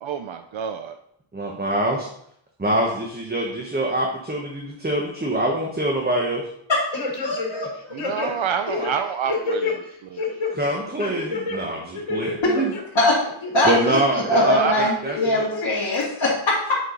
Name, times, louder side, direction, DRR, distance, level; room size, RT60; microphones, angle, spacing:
voice 1, 0.0-1.0 7.9-10.3 14.4-14.8, right 7 dB, 75° right, 8 dB, 0.6 m, -28 dB
voice 2, 1.3-2.1 2.6-6.5 10.5-12.7 13.6-15.5, right 1 dB, 20° right, 0 dB, 1.1 m, -25 dB
sound 1, 6.9-7.7 8.0-9.7 10.2-10.5 11.0-11.6 11.9-12.8 13.2-13.9 14.3-14.4 15.0-15.6 16.0-16.1, left 3 dB, 90° left, 2.4 m, -28 dB
voice 3, 7.2-7.7 13.0-13.2 13.5-14.0 14.3-16.8, left 1 dB, 60° left, -7 dB, 2.1 m, -21 dB
8.5 x 6.0 x 3.9 m, 0.71 s
wide cardioid pair, 115°, 48 cm